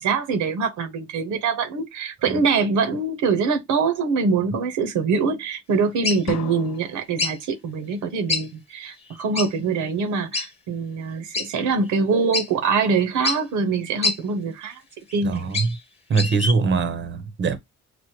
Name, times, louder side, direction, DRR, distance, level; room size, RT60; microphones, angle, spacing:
voice 1, 0.0-14.8 15.1-15.5, right 4 dB, 80° right, 0.9 m, -24 dB
sound 1, 6.0-6.3 7.2-7.4 8.3-8.5 8.8-8.9 9.4-9.5 10.3-10.5 11.3-11.5 12.0-12.1 12.3-12.5 13.2-13.4 14.0-14.2 15.1-15.8 16.1-16.5, left 3 dB, 20° left, 1.1 m, -25 dB
sound 2, 6.3-7.3, left 9 dB, 60° left, 0.6 m, -35 dB
voice 2, 15.2-15.8 16.1-17.6, right 4 dB, 40° right, 0.7 m, -22 dB
5.9 x 2.1 x 2.9 m
cardioid pair, 90°, 30 cm